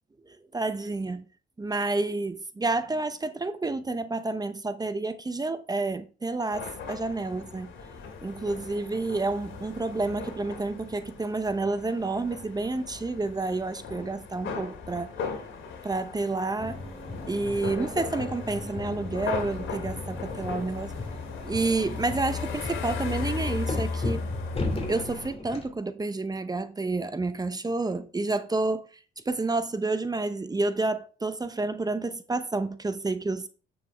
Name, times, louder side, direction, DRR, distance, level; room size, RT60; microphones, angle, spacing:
voice 1, 0.5-1.2 1.6-7.7 8.2-15.1 15.8-16.8 17.3-20.9 21.4-24.2 24.7-28.9 29.2-33.5, right 3 dB, 20° right, 0.8 m, -29 dB
sound 1, 6.5-25.3, left 5 dB, 75° left, 2.6 m, -37 dB
sound 2, 16.6-25.7, left 2 dB, 30° left, 2.8 m, -37 dB
8.3 x 7.1 x 3.5 m
cardioid pair, 90°, 20 cm